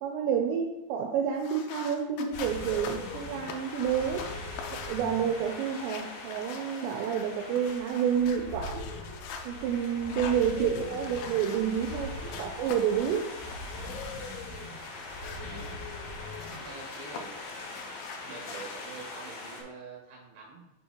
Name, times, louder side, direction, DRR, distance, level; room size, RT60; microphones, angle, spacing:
voice 1, 0.0-4.3 4.7-8.8 9.4-13.3, right 8 dB, 85° right, 3 dB, 2.7 m, -29 dB
sound 1, 1.3-9.5 10.0-12.0 12.3-14.4 14.8-17.2 17.5-18.8, left 6 dB, 85° left, 2.3 m, -44 dB
sound 2, 2.3-19.6, left 2 dB, 65° left, 2.7 m, -41 dB
voice 2, 15.4-15.8 16.5-17.3 18.2-20.7, right 4 dB, 60° right, -4 dB, 2.3 m, -46 dB
6.2 x 5.5 x 2.9 m, 0.93 s
omnidirectional pair, 5.1 m